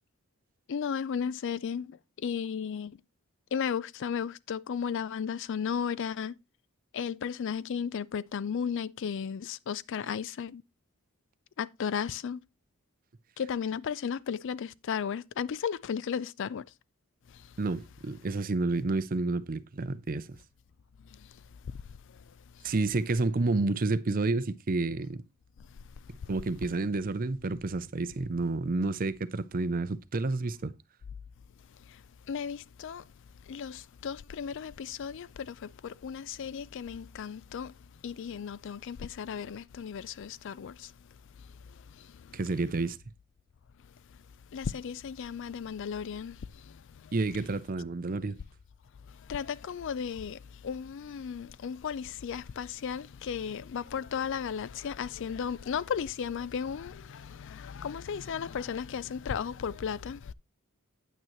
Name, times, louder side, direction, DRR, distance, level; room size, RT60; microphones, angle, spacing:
voice 1, 0.7-3.0 3.5-6.4 6.9-10.6 11.6-12.4 13.4-16.7 17.3-17.5 21.1-21.3 21.7-21.8 31.9-32.0 32.3-33.1 33.5-37.7 38.0-40.9 41.9-42.4 44.5-47.1 49.2-60.3, left 7 dB, 55° left, 0.4 m, -35 dB
voice 2, 17.6-20.4 22.6-25.2 26.3-30.7 42.3-43.0 47.1-48.4, right 3 dB, 40° right, 0.5 m, -30 dB
9.0 x 9.0 x 3.0 m
head